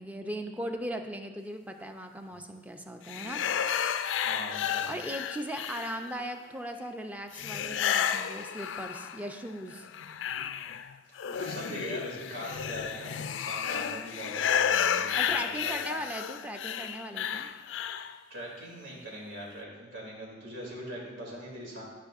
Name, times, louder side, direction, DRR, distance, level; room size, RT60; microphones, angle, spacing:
voice 1, 0.0-3.4 4.8-9.9 14.8-17.5, right 1 dB, 10° right, 5 dB, 0.5 m, -38 dB
sound 1, 3.1-6.2 7.3-9.3 9.7-18.2, left 8 dB, 80° left, 0.3 m, -32 dB
voice 2, 4.2-5.0 11.3-15.7 18.3-21.8, equal, 80° right, -4 dB, 2.6 m, -41 dB
12.5 x 6.0 x 2.5 m, 1.3 s
head